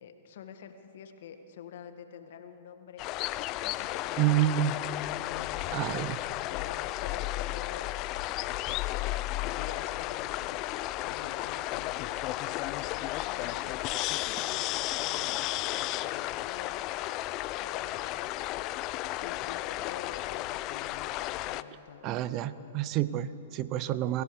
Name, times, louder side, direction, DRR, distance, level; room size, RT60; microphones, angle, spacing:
voice 1, 0.0-3.1 3.5-6.1 6.5-7.9 8.5-13.8 14.0-16.8 17.6-18.4 19.2-22.8, left 7 dB, 65° left, 7 dB, 1.7 m, -48 dB
sound 1, 3.0-21.6, left 16 dB, 40° left, 0.5 m, -33 dB
voice 2, 4.2-4.7 5.7-6.2 22.0-24.2, right 13 dB, 40° right, 16 dB, 0.6 m, -28 dB
25.5 x 15.5 x 6.8 m, 2.9 s
hypercardioid pair, 120°, 0 cm